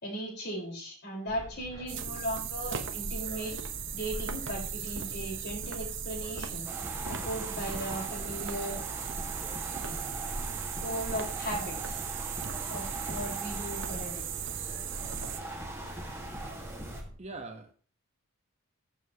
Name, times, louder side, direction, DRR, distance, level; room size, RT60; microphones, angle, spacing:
voice 1, 0.0-3.5 3.9-6.7 7.1-8.8 10.8-12.1 12.7-14.3, equal, 50° left, -1 dB, 4.6 m, -37 dB
sound 1, 1.3-17.1, equal, 20° left, 3.1 m, -44 dB
sound 2, 1.9-15.4, right 8 dB, 60° right, 1.0 m, -38 dB
sound 3, 6.6-17.0, right 2 dB, 10° right, 1.7 m, -41 dB
voice 2, 17.2-17.7, right 3 dB, 30° right, 5 dB, 1.0 m, -41 dB
14.5 x 7.2 x 2.9 m, 0.41 s
head